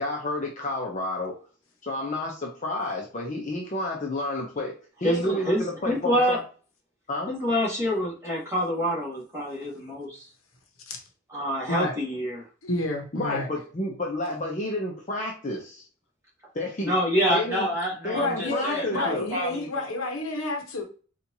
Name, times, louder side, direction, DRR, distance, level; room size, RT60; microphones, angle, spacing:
voice 1, 0.0-1.3 1.8-4.7 5.0-6.4 7.1-7.3 13.1-15.8 16.5-16.9 17.3-17.7 18.0-19.3, left 2 dB, 35° left, 0.7 m, -30 dB
voice 2, 5.0-6.4 7.3-10.3 11.3-12.4 16.8-19.9, equal, 15° right, 1.5 m, -27 dB
voice 3, 12.6-13.5 18.1-20.8, left 2 dB, 80° left, 0.9 m, -29 dB
4.3 x 2.5 x 2.8 m
head